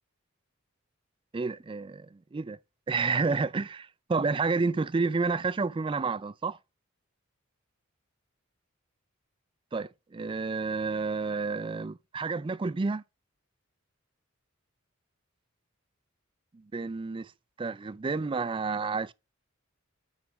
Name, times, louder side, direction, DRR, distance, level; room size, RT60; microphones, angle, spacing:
voice 1, 1.3-2.6 2.9-6.6 9.7-13.0 16.5-17.3 17.6-19.1, right 4 dB, 25° right, 0.3 m, -30 dB
9.7 x 3.5 x 6.2 m
head